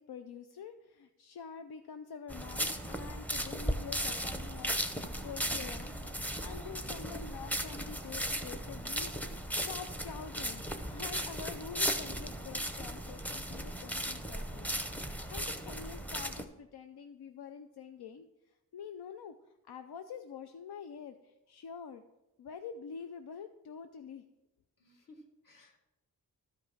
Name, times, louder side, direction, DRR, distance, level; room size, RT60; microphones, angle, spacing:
voice 1, 0.0-5.9 6.4-14.7 15.3-19.4 19.6-22.0 22.4-24.2, left 7 dB, 85° left, 8 dB, 0.6 m, -46 dB
sound 1, 2.3-16.4, equal, 5° left, 0.7 m, -36 dB
voice 2, 24.8-25.8, left 1 dB, 55° left, 2 dB, 1.8 m, -58 dB
12.5 x 5.3 x 6.1 m, 0.97 s
wide cardioid pair, 115°, 37 cm